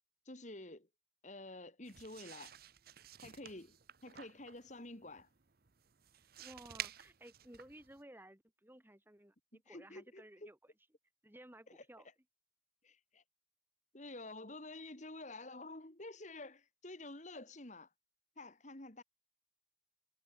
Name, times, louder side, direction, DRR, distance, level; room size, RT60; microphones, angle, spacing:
voice 1, 0.3-0.9 1.2-2.6 3.2-3.8 4.0-5.3 9.5-10.5 11.7-11.8 12.8-13.2 13.9-17.9 18.4-19.0, left 2 dB, 40° left, 2.3 m, -50 dB
sound 1, 1.8-8.0, right 11 dB, 50° right, 0.9 m, -51 dB
voice 2, 6.4-10.6 11.2-12.1, right 1 dB, 10° right, 1.6 m, -56 dB
head